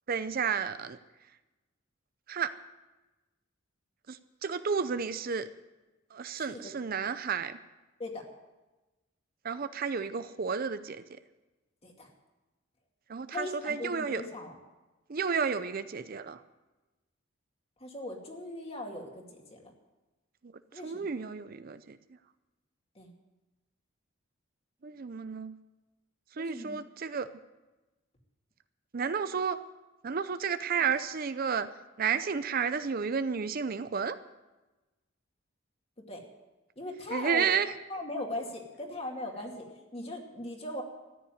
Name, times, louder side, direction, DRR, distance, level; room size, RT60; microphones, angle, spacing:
voice 1, 0.1-1.0 2.3-2.5 4.1-5.5 6.1-7.6 9.4-11.0 13.1-14.2 15.1-16.4 20.8-22.0 24.8-25.5 26.4-27.3 28.9-29.6 30.0-31.7 32.0-34.2 37.1-37.7, right 6 dB, 45° right, 12 dB, 0.5 m, -31 dB
voice 2, 6.3-6.7 8.0-8.2 11.8-12.1 13.3-14.6 17.8-19.6 20.7-21.0 23.0-23.1 26.4-26.8 36.1-36.2 36.8-37.5 37.9-39.6 39.9-40.8, left 1 dB, 30° left, 1 dB, 2.5 m, -39 dB
14.0 x 9.9 x 9.3 m, 1.1 s
head